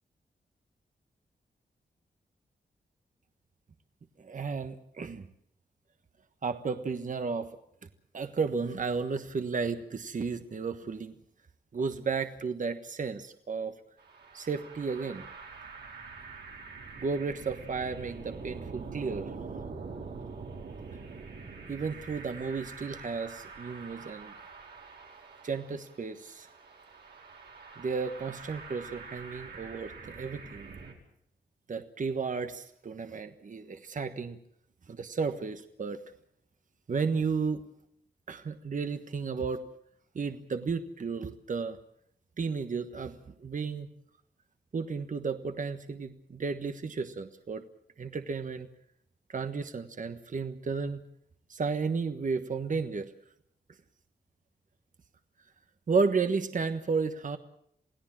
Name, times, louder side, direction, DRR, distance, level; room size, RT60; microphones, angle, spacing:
voice 1, 4.2-5.2 6.4-7.5 8.1-11.1 11.7-13.7 14.3-15.3 17.0-19.3 21.7-24.3 25.4-26.5 27.8-30.7 31.7-34.4 34.9-36.0 36.9-37.6 38.3-39.6 40.1-41.8 42.4-43.9 44.7-47.7 48.0-48.7 49.3-51.0 51.5-53.1 55.9-57.4, right 5 dB, 50° right, 8 dB, 1.3 m, -33 dB
sound 1, 14.0-30.9, right 4 dB, 85° right, 4.8 m, -45 dB
28.5 x 17.5 x 7.4 m, 0.71 s
wide cardioid pair, 85°, 17 cm